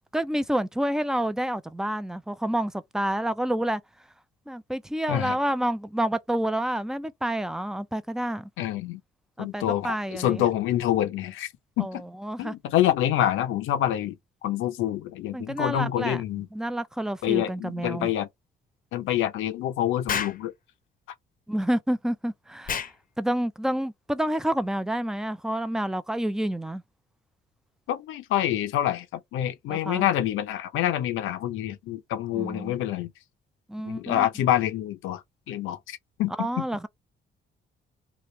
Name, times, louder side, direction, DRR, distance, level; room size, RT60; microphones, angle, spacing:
voice 1, 0.1-3.8 4.5-8.5 9.4-10.4 11.8-12.5 15.3-16.2 16.5-18.1 21.5-22.9 23.2-26.8 29.7-30.1 32.4-32.8 33.7-34.3 36.4-36.9, right 1 dB, 5° right, 0.4 m, -29 dB
voice 2, 8.6-9.0 9.4-11.5 11.8-12.0 12.4-14.2 14.4-16.5 17.2-18.3 18.9-20.5 27.9-33.1 33.8-36.6, left 12 dB, 90° left, 0.7 m, -27 dB
Explosion, 20.1-20.4 22.7-23.0, left 7 dB, 45° left, 0.7 m, -29 dB
2.9 x 2.5 x 3.1 m
cardioid pair, 90°, 20 cm